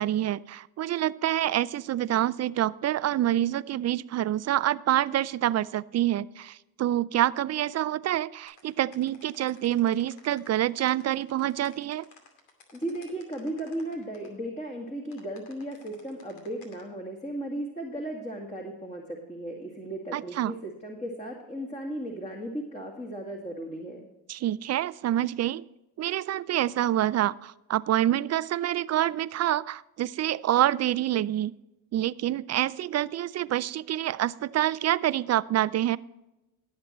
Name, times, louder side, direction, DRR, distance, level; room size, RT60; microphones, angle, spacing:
voice 1, 0.0-12.0 20.1-20.5 24.3-25.6 26.0-31.6 31.9-36.0, right 12 dB, 40° right, 18 dB, 0.4 m, -27 dB
sound 1, 8.5-14.3 15.1-16.8, left 3 dB, 80° left, 2.7 m, -54 dB
voice 2, 12.7-24.1, right 1 dB, 15° left, -1 dB, 2.2 m, -36 dB
19.0 x 7.5 x 3.1 m, 0.98 s
supercardioid pair, 75°, 42 cm